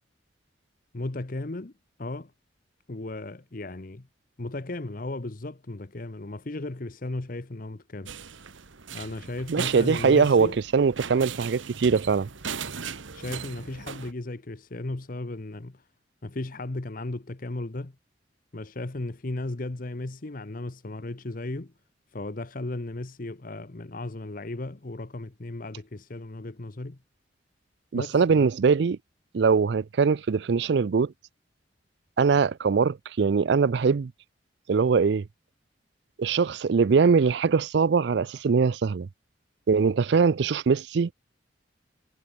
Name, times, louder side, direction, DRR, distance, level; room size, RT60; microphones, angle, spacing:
voice 1, 0.9-1.7 2.0-2.3 2.9-4.1 4.4-8.1 8.9-10.6 13.1-15.9 16.2-17.9 18.5-21.7 22.1-27.0 27.9-28.5, left 2 dB, 45° left, 0.9 m, -35 dB
sound 1, 8.1-14.1, right 6 dB, 90° right, 1.4 m, -38 dB
voice 2, 9.5-12.3 27.9-29.0 29.3-31.1 32.2-34.1 34.7-35.2 36.2-39.1 39.7-41.1, right 5 dB, 65° right, 0.4 m, -22 dB
head